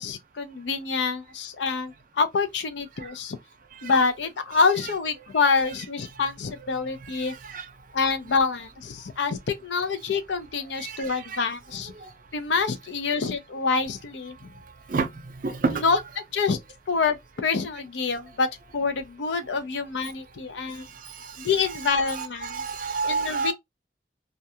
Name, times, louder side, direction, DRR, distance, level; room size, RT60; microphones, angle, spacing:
voice 1, 0.0-3.4 3.8-7.3 7.9-11.9 12.3-14.5 15.7-16.0 16.3-16.6 16.9-18.5 18.7-20.8 21.4-22.6 23.0-23.5, left 4 dB, 80° left, 0.5 m, -26 dB
voice 2, 10.8-11.4 14.9-15.1 15.4-15.8 21.7-23.5, right 4 dB, 50° right, 0.5 m, -29 dB
2.4 x 2.2 x 2.7 m
head